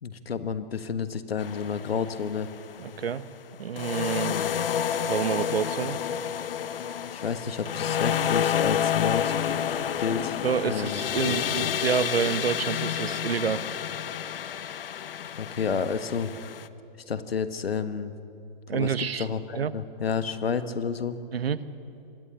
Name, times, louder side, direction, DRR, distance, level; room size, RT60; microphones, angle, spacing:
voice 1, 0.0-2.5 4.2-4.7 7.0-9.6 10.0-10.4 10.6-11.4 11.6-11.7 15.4-16.5 17.1-18.1 18.7-21.2, left 6 dB, 85° left, 11 dB, 1.5 m, -30 dB
sound 1, 1.4-2.8 3.8-16.7, left 9 dB, 70° left, 1.0 m, -29 dB
voice 2, 2.8-3.2 3.6-4.4 5.1-6.0 10.4-13.6 18.7-19.3 19.5-19.7 21.3-21.6, right 7 dB, 85° right, 15 dB, 1.0 m, -28 dB
sound 2, 7.4-12.5, left 9 dB, 25° left, 1.1 m, -45 dB
24.0 x 14.0 x 10.0 m, 2.6 s
hypercardioid pair, 140°, 29 cm